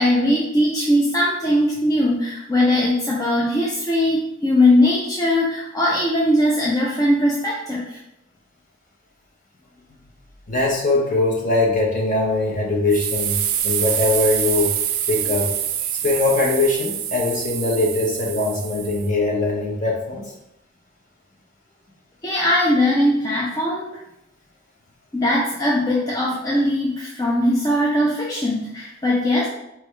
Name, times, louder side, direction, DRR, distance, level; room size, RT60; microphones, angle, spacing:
voice 1, 0.0-8.0 22.2-23.9 25.1-29.5, left 1 dB, 15° left, -5 dB, 0.5 m, -20 dB
voice 2, 10.5-14.7 15.1-15.5 16.0-20.2, left 2 dB, 35° left, -1 dB, 0.9 m, -21 dB
sound 1, 12.9-19.1, right 10 dB, 80° right, 0.5 m, -26 dB
4.4 x 3.4 x 3.2 m, 0.84 s
head